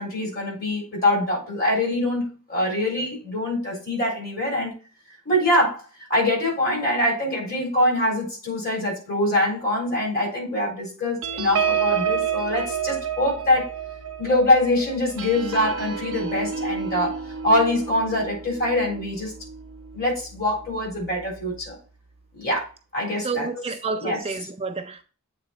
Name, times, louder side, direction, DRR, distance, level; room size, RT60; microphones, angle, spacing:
voice 1, 0.0-4.7 5.3-5.8 6.1-13.7 14.2-19.3 19.9-21.7 22.3-22.7 22.9-23.6 24.0-24.2, left 1 dB, 45° left, 3.8 m, -24 dB
sound 1, 11.2-20.1 20.6-20.8 21.1-21.4, right 7 dB, 65° right, 0.7 m, -29 dB
voice 2, 23.2-25.0, right 4 dB, 25° right, 0.5 m, -29 dB
8.0 x 3.9 x 4.0 m
head